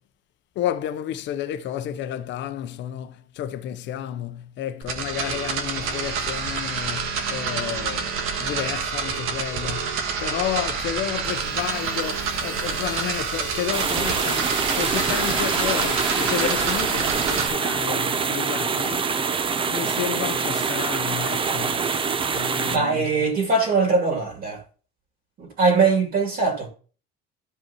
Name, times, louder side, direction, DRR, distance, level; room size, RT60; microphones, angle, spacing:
voice 1, 0.6-19.2 19.7-21.9 22.3-23.1, left 11 dB, 60° left, 0.7 m, -31 dB
sound 1, 4.8-17.5, right 6 dB, 75° right, 1.5 m, -28 dB
sound 2, 11.3-16.8, equal, 5° right, 2.2 m, -35 dB
sound 3, 13.7-22.8, right 5 dB, 25° right, 0.6 m, -25 dB
voice 2, 22.7-24.6 25.4-26.7, right 4 dB, 45° right, 2.5 m, -21 dB
13.5 x 5.3 x 2.9 m
cardioid pair, 150°, 21 cm